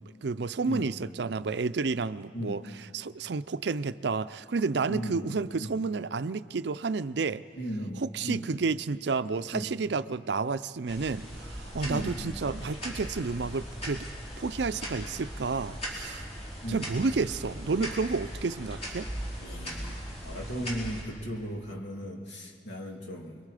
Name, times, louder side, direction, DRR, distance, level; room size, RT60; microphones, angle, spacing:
voice 1, 0.2-2.6 2.9-7.4 8.0-14.1 14.4-16.3 16.7-19.1, right 4 dB, 65° right, 14 dB, 0.5 m, -30 dB
voice 2, 4.9-5.7 7.5-8.5 9.5-9.7 11.8-12.3 16.6-16.9 19.4-23.5, equal, 75° left, 1 dB, 2.5 m, -37 dB
sound 1, 10.9-21.0, equal, 35° left, 4.6 m, -39 dB
29.5 x 22.5 x 5.0 m, 2.1 s
head